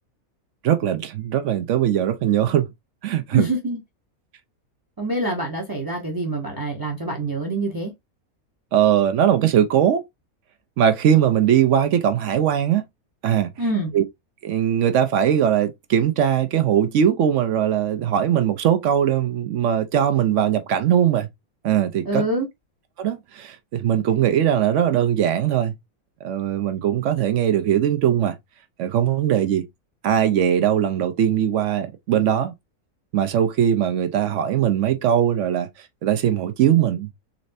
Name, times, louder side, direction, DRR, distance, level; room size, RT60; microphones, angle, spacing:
voice 1, 0.6-2.7 3.0-3.5 8.7-10.0 10.8-12.8 13.2-13.5 13.9-14.0 14.4-21.3 21.6-22.2 23.0-25.7 26.2-28.4 28.8-29.6 30.0-32.5 33.1-35.7 36.0-37.1, right 10 dB, 65° right, 0.8 m, -20 dB
voice 2, 3.3-3.8 5.0-7.9 13.6-13.9 22.0-22.5, right 2 dB, 20° right, 0.6 m, -25 dB
4.1 x 3.1 x 2.6 m
omnidirectional pair, 1.5 m